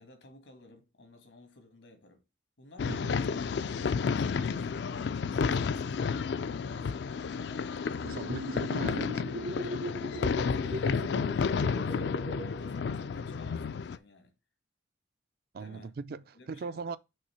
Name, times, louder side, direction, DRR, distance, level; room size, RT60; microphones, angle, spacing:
voice 1, 0.0-2.2 2.6-3.6 4.0-6.3 6.6-8.1 8.6-9.9 10.2-14.3 15.6-16.0 16.3-16.9, left 2 dB, 85° left, 1.7 m, -54 dB
sound 1, 2.8-14.0, left 5 dB, 65° left, 0.3 m, -31 dB
voice 2, 8.0-9.1 15.5-17.0, right 5 dB, 55° right, 0.4 m, -39 dB
sound 2, 8.1-13.5, right 1 dB, 70° right, 1.4 m, -40 dB
5.6 x 3.6 x 5.6 m
head